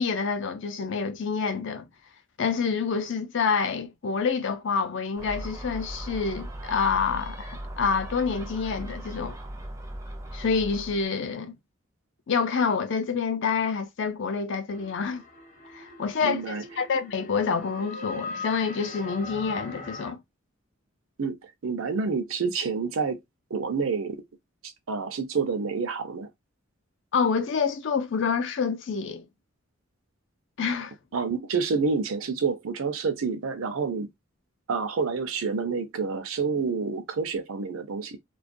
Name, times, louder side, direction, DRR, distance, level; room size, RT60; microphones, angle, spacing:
voice 1, 0.0-1.8 2.4-9.4 10.3-11.5 12.3-15.2 15.7-20.2 27.1-29.3 30.6-30.9, left 5 dB, 60° left, 0.4 m, -27 dB
Gull seagull, 5.2-11.1, right 1 dB, 15° right, 0.4 m, -38 dB
sound 1, 14.7-20.1, left 3 dB, 35° left, 0.8 m, -40 dB
voice 2, 16.2-16.6 21.2-23.2 23.5-24.2 24.6-26.3 31.1-34.1 34.7-38.2, right 5 dB, 75° right, 0.6 m, -28 dB
2.3 x 2.1 x 2.5 m
head